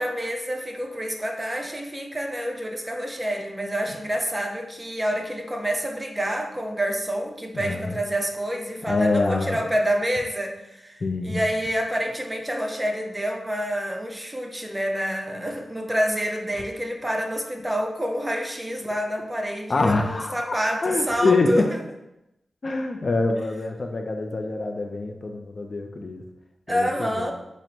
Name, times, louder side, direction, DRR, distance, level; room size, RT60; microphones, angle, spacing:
voice 1, 0.0-21.8 26.7-27.3, equal, 15° right, 2 dB, 0.6 m, -28 dB
voice 2, 7.5-8.0 8.9-9.6 11.0-11.4 19.7-20.4 20.8-21.7 22.6-26.3 26.7-27.3, left 3 dB, 55° left, 4 dB, 0.4 m, -25 dB
5.8 x 2.0 x 2.7 m, 0.88 s
cardioid pair, 60°, 0 cm